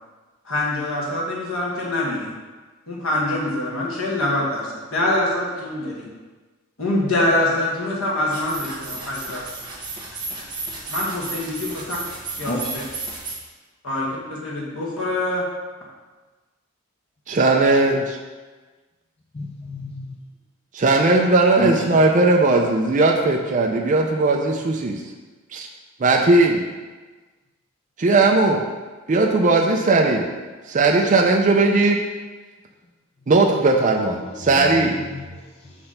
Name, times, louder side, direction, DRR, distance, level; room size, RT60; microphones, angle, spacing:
voice 1, 0.5-2.3 2.9-6.1 6.8-9.4 10.9-12.0 12.4-12.8 13.8-15.5, left 1 dB, 80° left, -5 dB, 1.8 m, -24 dB
sound 1, 8.3-13.3, right 3 dB, 20° right, 1.1 m, -33 dB
voice 2, 17.4-18.2 20.7-25.0 25.5-25.7 26.0-26.6 28.0-28.6 29.1-30.3 30.7-32.0 33.3-35.0, right 3 dB, 35° right, 1 dB, 0.4 m, -18 dB
voice 3, 19.3-20.1 21.6-21.7 34.6-34.7 35.0-35.8, left 1 dB, 30° left, -2 dB, 0.6 m, -30 dB
5.9 x 3.3 x 5.7 m, 1.3 s
head